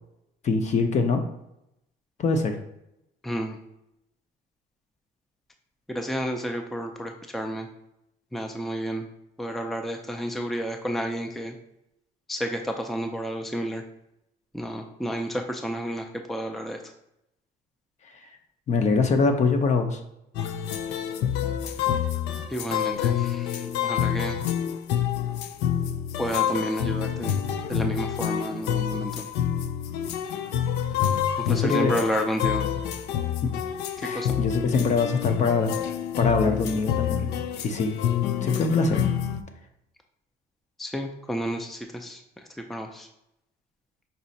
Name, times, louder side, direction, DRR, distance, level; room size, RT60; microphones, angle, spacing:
voice 1, 0.4-1.2 2.2-2.6 18.7-20.0 31.5-31.9 33.4-33.5 34.0-35.8 36.2-37.3 37.6-38.0 38.4-39.0, left 4 dB, 45° left, 6 dB, 0.7 m, -23 dB
voice 2, 3.2-3.6 5.9-7.7 8.3-9.1 9.4-11.5 12.3-13.8 14.5-16.8 22.5-24.4 26.2-27.4 27.7-29.3 31.5-32.7 34.1-34.4 40.8-42.2 42.7-43.1, equal, ahead, 4 dB, 0.4 m, -31 dB
sound 1, 20.3-39.4, left 10 dB, 85° left, 0.4 m, -27 dB
5.4 x 2.4 x 4.1 m, 0.84 s
cardioid pair, 110°, 17 cm